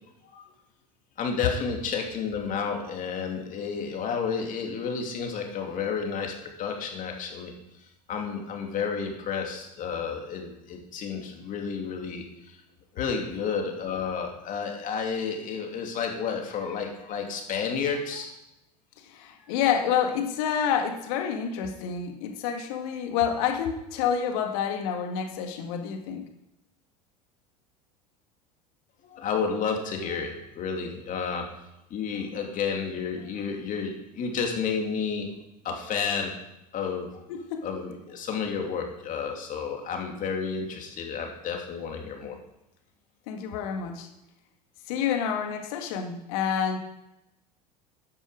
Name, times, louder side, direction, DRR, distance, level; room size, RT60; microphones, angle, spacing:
voice 1, 1.2-7.5 8.1-12.2 12.9-18.3 29.1-31.5 31.9-35.3 35.6-36.4 36.7-37.2 37.6-42.4, left 6 dB, 40° left, 2 dB, 2.9 m, -31 dB
voice 2, 19.0-26.3 37.3-37.7 43.3-44.1 44.9-46.8, left 8 dB, 60° left, 5 dB, 2.0 m, -28 dB
13.0 x 9.9 x 5.1 m, 0.91 s
figure-of-eight pair, 75°, 21 cm